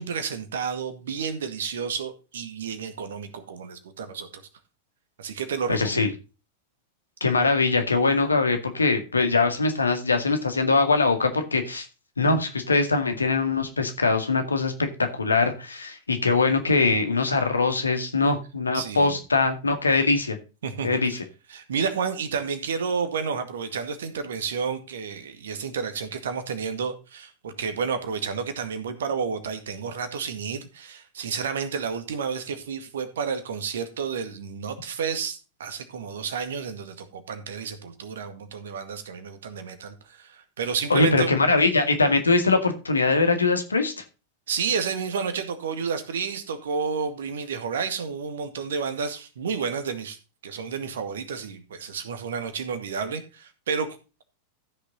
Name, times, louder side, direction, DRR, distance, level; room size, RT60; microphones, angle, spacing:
voice 1, 0.0-4.4 5.2-6.1 18.7-19.2 20.6-21.0 21.5-41.3 44.5-50.2 50.4-54.2, right 6 dB, 60° right, 9 dB, 2.0 m, -31 dB
voice 2, 5.7-6.1 7.2-11.9 12.2-14.7 15.0-20.4 20.8-21.2 40.9-44.0, left 3 dB, 75° left, 7 dB, 2.0 m, -22 dB
14.5 x 6.7 x 3.9 m, 0.31 s
figure-of-eight pair, 90°, 0 cm